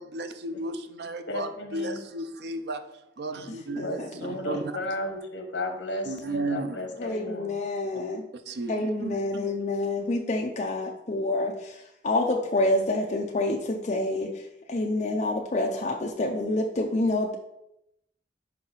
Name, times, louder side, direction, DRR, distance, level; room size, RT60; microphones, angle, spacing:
voice 1, 0.1-0.7 1.0-2.8 3.2-3.3 3.7-4.0 4.5-4.6 6.1-6.7 8.6-9.2, right 2 dB, 60° right, 9 dB, 0.5 m, -32 dB
voice 2, 1.3-2.0 3.8-7.6, left 1 dB, 75° left, 5 dB, 1.1 m, -34 dB
voice 3, 4.0-4.3 7.0-8.2 8.7-14.4 14.7-17.4, left 2 dB, 40° left, 1 dB, 0.5 m, -27 dB
5.7 x 4.8 x 3.9 m, 0.83 s
head